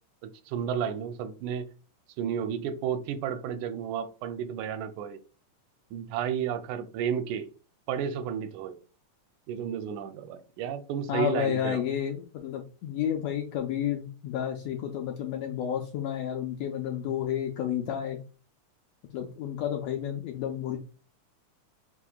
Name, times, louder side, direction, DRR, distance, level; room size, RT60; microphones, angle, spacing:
voice 1, 0.2-1.7 2.2-5.2 5.9-7.5 7.9-8.8 9.5-11.8, right 8 dB, 90° right, 2.0 m, -32 dB
voice 2, 11.1-18.2 19.1-20.8, left 9 dB, 85° left, 1.5 m, -31 dB
5.8 x 2.8 x 2.2 m
omnidirectional pair, 3.4 m